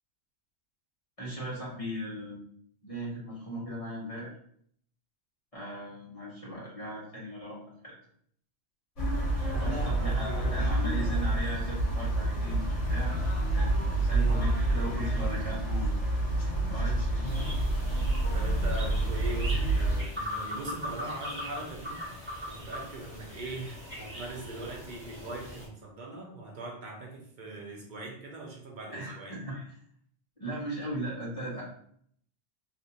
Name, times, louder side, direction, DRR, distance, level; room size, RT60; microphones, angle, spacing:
voice 1, 1.2-2.4 2.8-4.3 5.5-7.6 7.8-7.9 9.6-13.1 13.6-15.9 16.4-17.4 28.9-29.7 30.4-31.6, right 1 dB, 30° left, -7 dB, 1.1 m, -38 dB
sound 1, 9.0-20.0, right 1 dB, 75° left, 1.7 m, -28 dB
voice 2, 9.5-10.8 14.1-14.5 16.8-16.9 18.3-29.4, right 2 dB, 45° right, 0 dB, 0.8 m, -41 dB
sound 2, 17.2-25.7, left 1 dB, 10° right, 1.4 m, -41 dB
3.3 x 2.7 x 2.7 m, 0.64 s
omnidirectional pair, 1.2 m